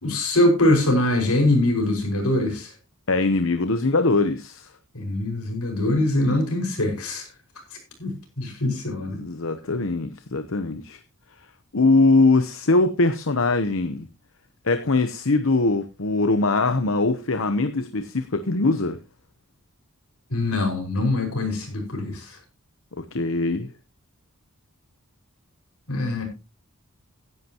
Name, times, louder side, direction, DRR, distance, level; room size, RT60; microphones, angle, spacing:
voice 1, 0.0-2.7 4.9-7.2 8.0-8.1 8.4-9.2 20.3-22.4 25.9-26.2, left 1 dB, 80° left, 5.6 m, -23 dB
voice 2, 3.1-4.7 9.1-11.0 11.7-14.1 14.6-19.0 23.0-23.7, left 3 dB, 60° left, 0.9 m, -22 dB
16.0 x 11.0 x 3.0 m
head